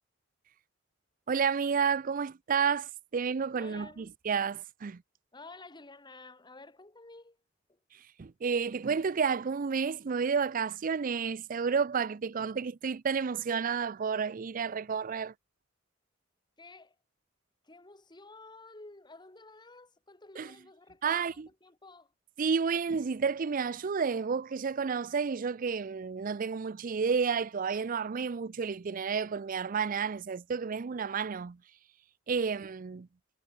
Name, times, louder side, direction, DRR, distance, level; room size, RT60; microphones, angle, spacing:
voice 1, 1.3-5.0 7.9-15.3 20.4-20.5 21.0-21.5 22.4-31.6 32.3-33.1, right 6 dB, 45° right, 0.5 m, -31 dB
voice 2, 3.6-4.1 5.3-7.4 7.7-7.8 16.6-17.0 17.6-22.1, left 3 dB, 25° left, 1.8 m, -52 dB
head